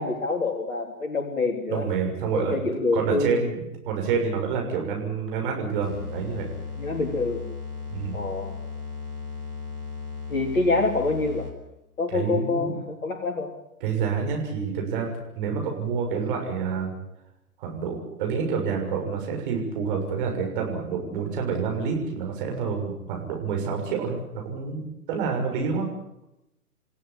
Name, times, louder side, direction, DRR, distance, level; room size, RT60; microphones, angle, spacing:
voice 1, 0.0-1.9 2.3-3.4 6.8-7.5 8.1-8.6 10.3-11.5 12.0-13.5, left 3 dB, 60° left, 0 dB, 3.9 m, -26 dB
voice 2, 1.7-2.5 2.9-6.5 7.9-8.1 12.1-12.7 13.8-16.9 17.6-25.9, right 5 dB, 35° right, 2 dB, 6.7 m, -28 dB
sound 1, 5.8-11.7, left 5 dB, 80° right, 5.7 m, -36 dB
29.0 x 15.5 x 9.9 m, 0.86 s
figure-of-eight pair, 125°, 45 cm